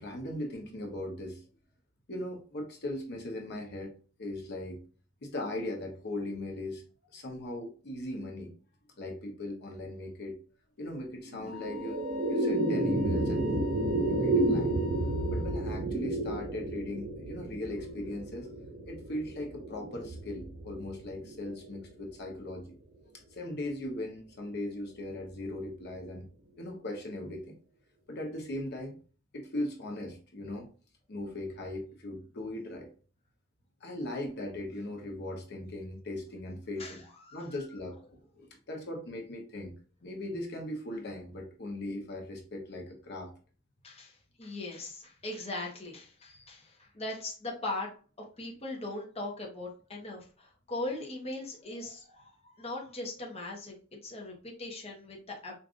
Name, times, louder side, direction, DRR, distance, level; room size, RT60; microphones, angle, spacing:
voice 1, 0.0-1.4 2.1-3.9 4.2-4.8 5.2-6.8 7.1-8.5 9.0-10.3 10.8-13.8 14.0-14.7 15.3-18.5 18.8-22.7 23.3-26.3 26.6-27.6 28.1-29.0 29.3-30.7 31.1-32.9 33.8-37.0 37.3-39.7 40.0-43.3, left 1 dB, 55° left, 2 dB, 0.9 m, -39 dB
sound 1, 11.3-21.8, right 2 dB, 45° right, 0.7 m, -31 dB
Wind instrument woodwind instrument, 11.4-15.7, left 5 dB, 5° left, 1.5 m, -48 dB
voice 2, 36.8-37.5 43.8-47.9 48.4-55.6, left 2 dB, 30° left, -2 dB, 0.8 m, -40 dB
4.8 x 2.5 x 2.5 m, 0.39 s
head